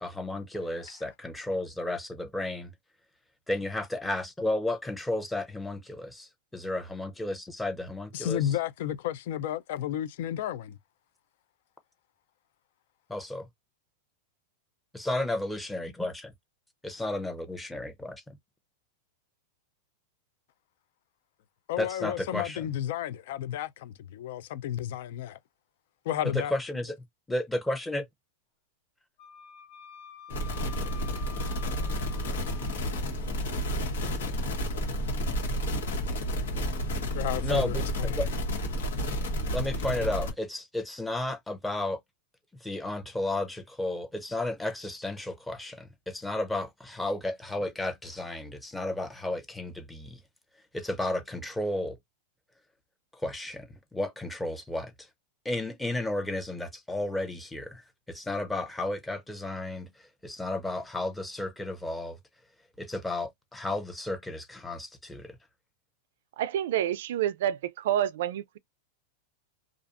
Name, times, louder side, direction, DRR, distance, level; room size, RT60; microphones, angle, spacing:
voice 1, 0.0-2.7 3.5-8.5 13.1-13.5 14.9-16.3 16.8-18.4 21.8-22.7 26.5-27.0 27.3-28.1 37.4-38.3 39.5-42.0 42.6-50.2 50.7-52.0 53.1-55.1 55.4-62.2 62.8-65.4, left 1 dB, 5° left, 0.7 m, -33 dB
voice 2, 8.1-10.8 21.7-25.4 26.1-26.5 37.1-38.2, left 11 dB, 65° left, 0.4 m, -32 dB
Wind instrument woodwind instrument, 29.2-32.8, left 7 dB, 50° left, 1.3 m, -48 dB
sound 1, 30.3-40.3, equal, 80° left, 1.3 m, -31 dB
voice 3, 66.4-68.6, right 11 dB, 70° right, 0.3 m, -28 dB
2.5 x 2.4 x 2.4 m
supercardioid pair, 130°, 0 cm